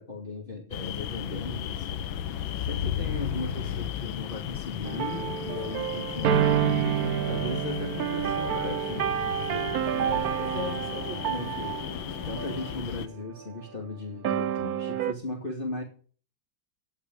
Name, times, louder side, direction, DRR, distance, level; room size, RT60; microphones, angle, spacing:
voice 1, 0.0-2.0 2.6-6.9 7.3-9.1 9.9-11.8 12.2-15.8, left 2 dB, 25° left, -1 dB, 2.7 m, -37 dB
sound 1, 0.7-13.1, left 10 dB, 75° left, 1.6 m, -34 dB
sound 2, 4.8-12.8 13.4-13.6 14.2-15.1, right 10 dB, 60° right, 1.0 m, -29 dB
17.0 x 5.8 x 9.5 m, 0.42 s
omnidirectional pair, 2.3 m